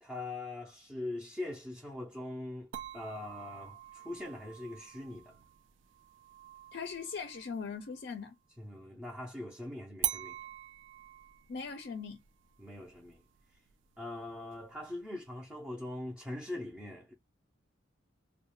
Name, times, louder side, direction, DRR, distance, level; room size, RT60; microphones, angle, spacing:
voice 1, 0.0-5.4 8.6-10.4 12.6-13.2 13.5-13.6 14.0-17.1, left 2 dB, 5° right, 0.5 m, -42 dB
sound 1, 2.7-8.3 10.0-15.0, right 13 dB, 70° right, 0.3 m, -44 dB
voice 2, 6.7-8.3 11.5-12.2, left 5 dB, 55° left, 0.4 m, -40 dB
2.3 x 2.1 x 3.0 m
head